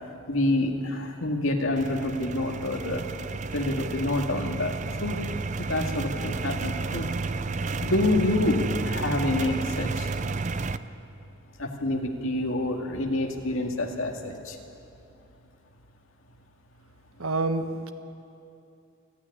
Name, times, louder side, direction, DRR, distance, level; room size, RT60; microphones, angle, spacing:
voice 1, 0.3-3.0 3.5-5.2 5.6-7.1 7.8-10.1 11.6-14.6, left 1 dB, 70° left, 2 dB, 2.0 m, -27 dB
sound 1, 1.8-10.8, right 3 dB, 35° right, 0.5 m, -31 dB
voice 2, 17.2-17.9, right 3 dB, 85° right, 8 dB, 1.3 m, -27 dB
28.5 x 9.8 x 9.9 m, 2.7 s
head